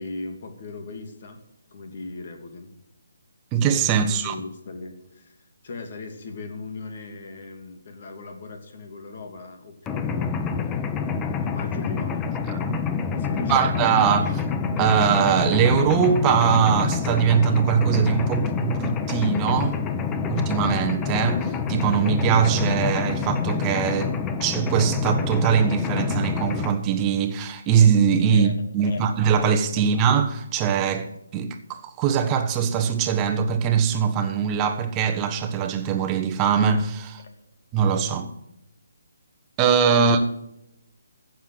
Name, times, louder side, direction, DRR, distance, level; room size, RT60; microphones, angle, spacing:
voice 1, 0.0-1.4 1.7-2.7 3.8-11.1 11.4-12.7 13.1-13.9 14.2-14.3 28.3-29.0 29.8-29.9 39.9-40.3, left 3 dB, 50° left, 2.8 m, -38 dB
voice 2, 3.5-4.3 12.7-12.8 13.4-14.5 14.8-19.8 20.3-24.1 24.4-37.2 37.7-38.3 39.6-40.2, right 7 dB, 20° right, 1.4 m, -22 dB
Mechanisms, 9.9-26.7, left 5 dB, 15° left, 0.8 m, -27 dB
14.5 x 7.5 x 7.9 m
hypercardioid pair, 155°, 0 cm